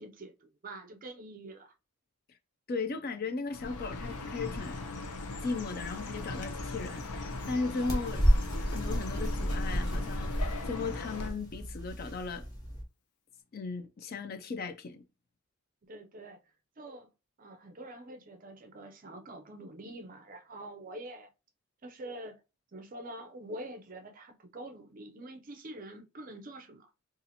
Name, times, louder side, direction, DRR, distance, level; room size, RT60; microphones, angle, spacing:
voice 1, 0.0-1.7 15.8-16.4 16.8-17.1 17.4-21.3 21.8-22.4 22.7-26.9, right 1 dB, 35° right, 0.4 m, -45 dB
voice 2, 2.7-4.8 5.4-8.2 8.6-10.3 10.6-12.4 13.5-15.0, left 4 dB, 45° left, 0.3 m, -36 dB
Chirp tweet, 3.5-11.3, left 3 dB, 85° left, 0.6 m, -39 dB
sound 1, 6.2-12.8, equal, 15° left, 0.8 m, -32 dB
2.7 x 2.4 x 4.1 m
head